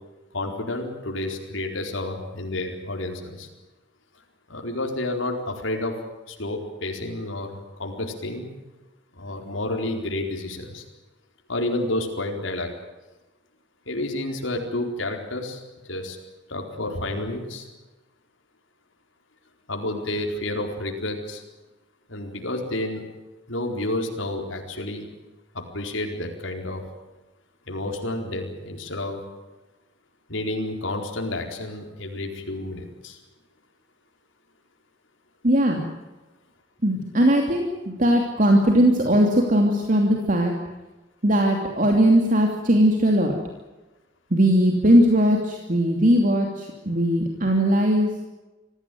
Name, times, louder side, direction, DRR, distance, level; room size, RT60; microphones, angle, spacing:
voice 1, 0.3-3.5 4.5-6.0 6.3-8.5 9.2-10.8 11.5-12.7 13.9-15.6 15.9-16.2 16.5-17.7 19.7-21.4 22.1-23.0 23.5-25.1 25.5-26.8 27.7-29.2 30.3-33.2, left 1 dB, 85° left, 2 dB, 4.4 m, -30 dB
voice 2, 35.4-35.9 36.8-40.5 41.2-43.3 44.3-48.1, equal, 45° right, 2 dB, 2.8 m, -19 dB
26.5 x 16.5 x 9.4 m, 1.1 s
head